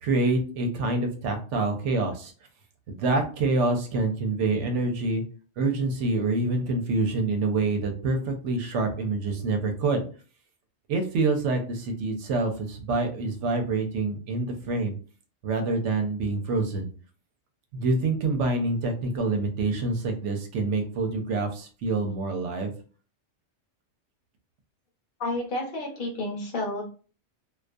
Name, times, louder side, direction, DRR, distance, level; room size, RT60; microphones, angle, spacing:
voice 1, 0.0-2.3 2.9-5.2 5.6-10.0 10.9-14.9 15.4-16.9 17.7-22.7, right 3 dB, 80° right, 4 dB, 0.9 m, -26 dB
voice 2, 25.2-26.8, left 2 dB, 45° left, -1 dB, 0.9 m, -30 dB
2.3 x 2.3 x 2.5 m, 0.38 s
omnidirectional pair, 1.2 m